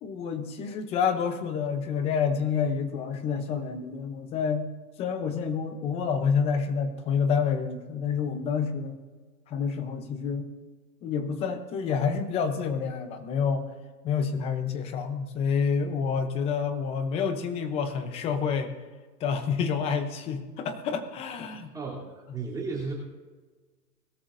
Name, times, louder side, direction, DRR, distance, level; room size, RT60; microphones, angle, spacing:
voice 1, 0.0-4.7 5.0-9.0 9.5-10.5 11.0-13.7 14.0-18.7 19.2-21.7, left 6 dB, 15° left, 9 dB, 0.7 m, -28 dB
voice 2, 21.5-22.9, right 4 dB, 5° right, -5 dB, 3.2 m, -35 dB
21.5 x 13.5 x 2.6 m, 1.4 s
hypercardioid pair, 150°, 48 cm